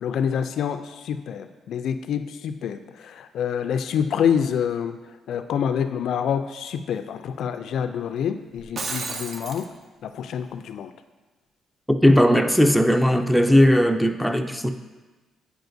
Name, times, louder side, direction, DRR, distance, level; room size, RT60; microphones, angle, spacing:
voice 1, 0.0-5.0 5.3-9.7 10.0-10.9, left 8 dB, 70° left, 9 dB, 0.3 m, -27 dB
Shatter, 8.6-9.7, right 3 dB, 45° right, 0.6 m, -32 dB
voice 2, 11.9-14.7, equal, ahead, 5 dB, 0.4 m, -18 dB
9.1 x 4.9 x 2.6 m, 1.2 s
cardioid pair, 90°, 0 cm